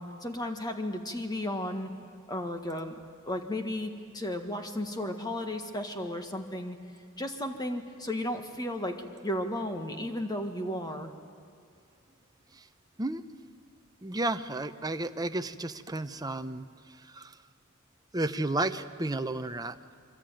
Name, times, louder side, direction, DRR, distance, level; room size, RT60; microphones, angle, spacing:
voice 1, 0.0-1.9 2.3-2.9 3.3-6.8 7.2-9.0 9.2-11.1, left 1 dB, 20° left, 5 dB, 1.7 m, -34 dB
voice 2, 14.0-17.4 18.1-19.8, right 2 dB, 15° right, 9 dB, 0.7 m, -32 dB
26.0 x 24.0 x 9.2 m, 2.3 s
head